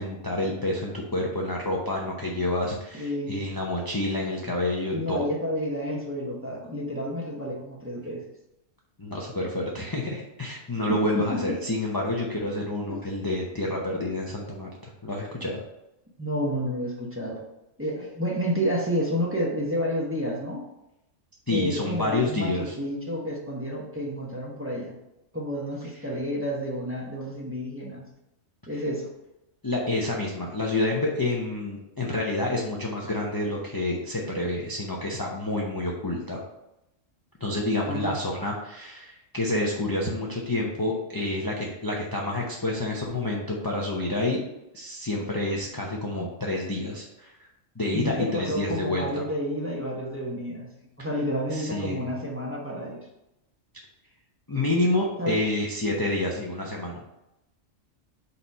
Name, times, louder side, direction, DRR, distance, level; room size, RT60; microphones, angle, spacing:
voice 1, 0.0-5.2 9.0-15.6 21.5-22.7 29.6-36.4 37.4-44.4 44.7-47.3 47.8-49.2 51.5-52.1 54.5-57.1, left 2 dB, 20° left, -3 dB, 0.6 m, -28 dB
voice 2, 2.9-3.5 4.9-8.2 10.9-11.5 12.9-13.0 16.2-17.4 17.8-20.6 21.5-25.0 25.3-28.1 28.7-29.1 37.8-38.2 47.9-50.7 51.0-53.0 55.2-55.4, equal, 10° right, -3 dB, 1.0 m, -30 dB
4.4 x 4.1 x 5.3 m, 0.91 s
omnidirectional pair, 1.3 m